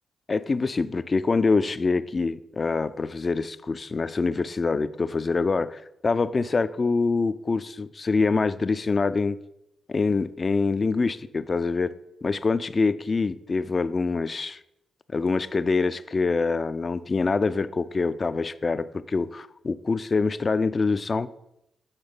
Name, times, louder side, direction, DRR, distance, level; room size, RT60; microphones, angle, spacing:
voice 1, 0.3-9.4 9.9-11.9 12.2-14.6 15.1-21.3, left 4 dB, 40° left, 14 dB, 0.3 m, -25 dB
5.6 x 4.0 x 5.2 m, 0.84 s
supercardioid pair, 55°, 0 cm